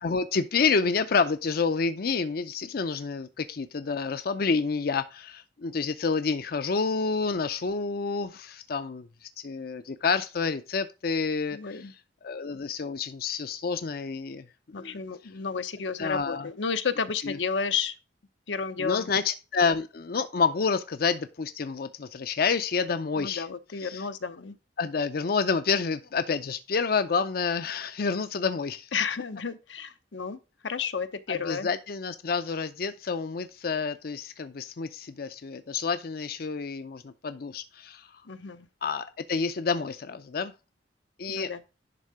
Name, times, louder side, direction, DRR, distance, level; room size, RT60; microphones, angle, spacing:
voice 1, 0.0-9.1 9.4-11.9 12.2-14.4 14.8-15.0 16.0-16.5 17.2-17.4 18.8-23.5 23.8-24.0 24.8-28.9 31.3-38.2 38.8-40.5 41.2-41.5, left 5 dB, 55° left, 0.5 m, -29 dB
voice 2, 11.5-11.9 14.7-17.9 18.5-19.1 23.2-24.6 28.9-30.4 30.6-31.7 38.3-38.7 41.3-41.6, left 6 dB, 85° left, 0.8 m, -32 dB
11.0 x 3.7 x 4.7 m
head